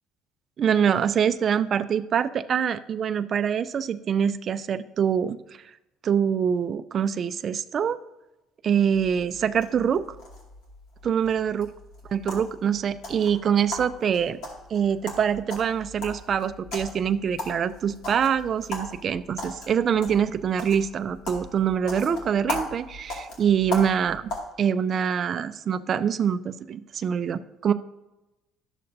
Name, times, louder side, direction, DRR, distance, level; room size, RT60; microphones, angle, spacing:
voice 1, 0.6-5.4 6.0-8.0 8.6-10.1 11.0-11.7 12.1-14.4 14.7-24.3 24.6-27.7, right 8 dB, 40° right, 11 dB, 0.3 m, -24 dB
sound 1, 8.9-24.4, left 1 dB, 75° left, 2.2 m, -38 dB
11.5 x 6.7 x 2.6 m, 0.99 s
cardioid pair, 125°, 0 cm